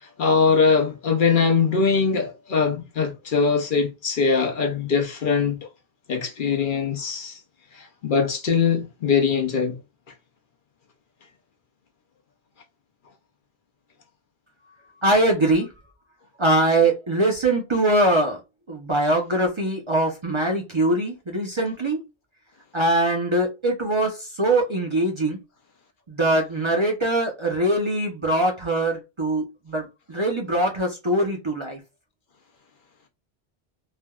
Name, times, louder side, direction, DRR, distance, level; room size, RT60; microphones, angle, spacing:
voice 1, 0.0-5.7 6.1-7.4 7.7-9.8, left 5 dB, 60° left, 0.7 m, -22 dB
voice 2, 15.0-15.7 16.4-18.4 18.7-22.0 22.7-25.4 26.1-31.8, right 1 dB, 35° right, 0.6 m, -22 dB
3.3 x 2.2 x 2.2 m
omnidirectional pair, 1.1 m